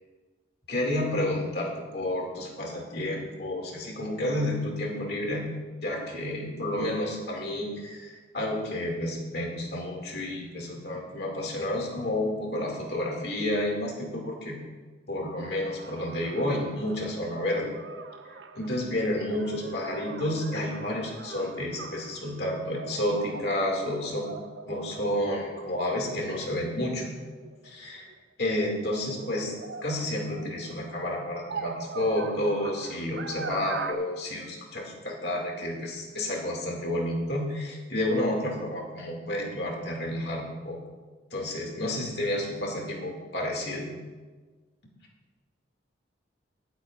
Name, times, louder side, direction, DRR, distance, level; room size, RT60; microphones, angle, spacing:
voice 1, 0.7-5.5 5.8-14.6 15.1-17.7 18.5-24.3 24.7-27.1 27.6-28.1 28.4-29.5 29.8-40.8 41.3-43.9, left 1 dB, 60° left, 0 dB, 2.3 m, -30 dB
sound 1, 15.4-28.1 28.6-33.9, right 4 dB, 70° right, 0.6 m, -42 dB
22.5 x 8.1 x 2.5 m, 1.4 s
head